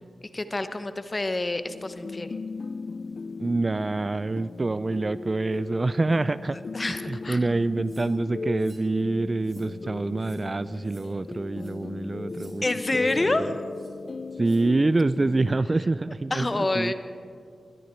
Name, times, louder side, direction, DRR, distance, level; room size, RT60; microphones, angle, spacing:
voice 1, 0.2-2.4 6.7-7.4 12.6-13.5 16.3-16.9, left 2 dB, 35° left, 10 dB, 1.0 m, -27 dB
sound 1, 1.7-15.6, left 4 dB, 60° left, 0.3 m, -37 dB
voice 2, 3.4-6.6 7.1-12.6 13.0-13.1 14.4-16.9, right 2 dB, 35° right, 16 dB, 0.3 m, -26 dB
sound 2, 7.9-8.1 8.6-8.8 9.4-9.7 10.2-10.4 10.8-11.0 11.5-11.7 12.3-12.5 13.0-13.2 13.7-13.9 14.4-14.6, right 3 dB, 55° right, 4.3 m, -56 dB
21.0 x 13.0 x 4.5 m, 2.3 s
cardioid pair, 55°, 0 cm